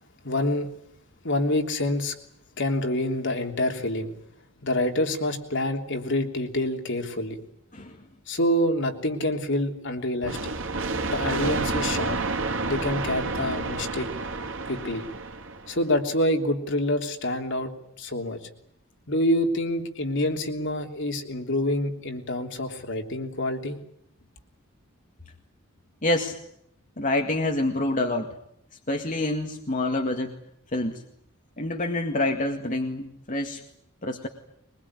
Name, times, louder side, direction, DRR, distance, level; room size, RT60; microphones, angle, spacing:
voice 1, 0.2-0.7 1.2-2.1 2.6-4.1 4.6-7.4 8.3-10.5 11.1-12.2 12.6-14.1 14.6-15.0 15.7-17.7 18.0-18.4 19.1-23.8, left 1 dB, 60° left, 4 dB, 3.2 m, -27 dB
sound 1, 10.2-15.8, right 3 dB, 60° right, 3.0 m, -29 dB
voice 2, 26.0-26.4 27.0-28.3 28.9-30.4 30.7-31.0 31.6-33.6 34.0-34.3, left 2 dB, 40° left, 3 dB, 2.0 m, -27 dB
23.0 x 22.0 x 9.8 m, 0.72 s
head